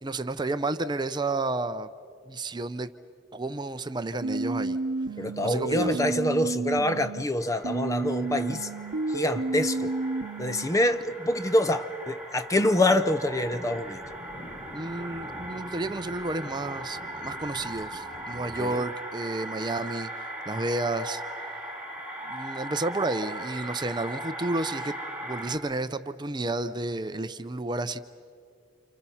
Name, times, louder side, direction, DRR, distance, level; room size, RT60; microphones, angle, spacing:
voice 1, 0.0-1.9 2.3-2.9 3.3-4.8 5.4-6.0 14.7-21.2 22.2-25.0 25.2-28.0, right 2 dB, 20° right, 0.6 m, -31 dB
sound 1, 4.2-7.2 7.6-10.7, right 3 dB, 80° right, 0.9 m, -31 dB
voice 2, 5.2-8.7 9.1-9.9 10.4-14.0 18.6-18.8, left 1 dB, 15° left, 0.6 m, -26 dB
sound 2, 7.4-25.6, right 1 dB, 5° right, 2.8 m, -39 dB
sound 3, 8.8-18.6, equal, 35° left, 5.5 m, -47 dB
30.0 x 28.0 x 5.7 m
head